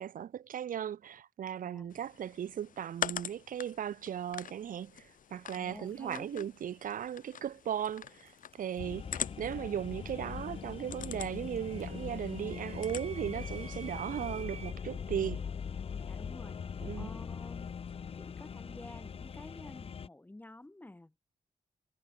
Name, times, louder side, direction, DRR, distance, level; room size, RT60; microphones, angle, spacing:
voice 1, 0.0-4.9 5.3-8.3 8.6-15.4 16.8-17.1, right 9 dB, 70° right, 0.7 m, -37 dB
voice 2, 1.6-2.0 5.5-6.5 15.9-16.6 17.0-17.7 18.1-21.1, left 1 dB, 10° left, 4.5 m, -50 dB
sound 1, 1.9-14.4, left 8 dB, 70° left, 1.5 m, -45 dB
sound 2, 4.2-4.4 5.6-6.1 8.3-9.2 9.5-14.7, right 6 dB, 45° right, 2.7 m, -52 dB
sound 3, 8.8-20.1, left 6 dB, 45° left, 0.6 m, -41 dB
wide cardioid pair, 140°, 14 cm